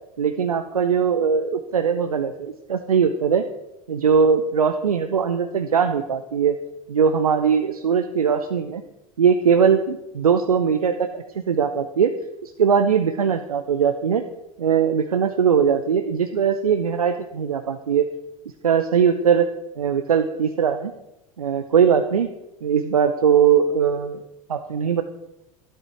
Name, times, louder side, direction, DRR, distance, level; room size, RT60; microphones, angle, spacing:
voice 1, 0.2-3.5 3.9-6.6 6.9-8.8 9.2-12.1 12.4-14.2 14.6-18.1 18.6-19.5 19.8-20.9 21.4-22.3 22.6-24.2 24.5-25.0, right 7 dB, 80° right, 7 dB, 0.7 m, -20 dB
12.5 x 11.5 x 4.5 m, 0.94 s
figure-of-eight pair, 75°, 18 cm